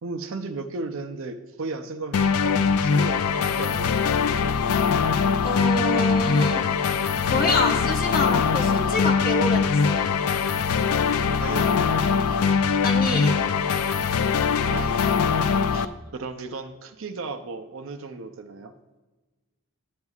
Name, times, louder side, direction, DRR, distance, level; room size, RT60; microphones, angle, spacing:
voice 1, 0.0-4.1 10.6-10.7 11.4-11.8 14.6-15.2 15.7-18.7, right 3 dB, 60° right, 7 dB, 0.5 m, -35 dB
sound 1, 2.1-15.9, left 6 dB, 75° left, 0.4 m, -22 dB
voice 2, 5.4-6.6 7.2-10.1 12.8-13.4, left 2 dB, 40° left, 1 dB, 1.1 m, -27 dB
10.5 x 9.3 x 2.4 m, 1.2 s
head